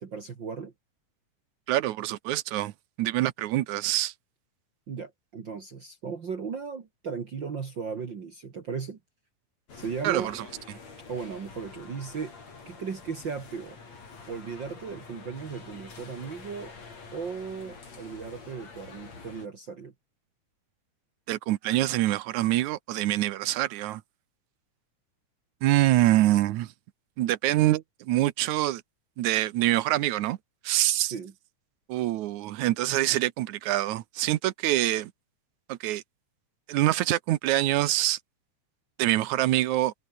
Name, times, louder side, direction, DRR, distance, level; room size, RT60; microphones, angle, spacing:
voice 1, 0.0-0.7 4.9-9.0 9.7-10.3 11.1-12.3 12.7-13.8 14.3-16.7 17.1-19.9 31.1-31.3, right 5 dB, 40° right, 2.4 m, -36 dB
voice 2, 1.7-2.7 3.0-4.1 10.0-10.5 21.3-24.0 25.6-26.7 27.2-28.8 29.2-30.4 30.6-31.1 31.9-35.1 35.7-36.0 36.7-38.2 39.0-39.9, right 15 dB, 80° right, 2.3 m, -25 dB
sound 1, 9.7-19.5, left 4 dB, 65° left, 6.2 m, -47 dB
omnidirectional pair, 3.4 m